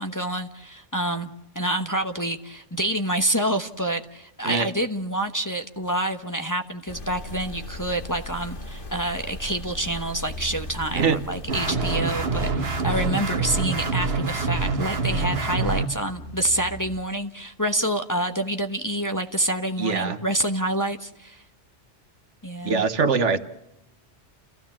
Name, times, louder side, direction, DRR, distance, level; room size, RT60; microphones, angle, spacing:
voice 1, 0.0-21.4 22.4-22.8, right 1 dB, 15° left, 5 dB, 1.0 m, -27 dB
sound 1, 6.9-11.8, left 1 dB, 45° left, 1.8 m, -38 dB
sound 2, 10.3-17.0, equal, 60° left, 2.2 m, -39 dB
sound 3, 11.5-15.9, right 3 dB, 55° right, 1.7 m, -26 dB
voice 2, 19.8-20.2 22.6-23.4, right 5 dB, 70° right, 11 dB, 1.5 m, -22 dB
30.0 x 15.5 x 7.3 m, 0.93 s
omnidirectional pair, 1.3 m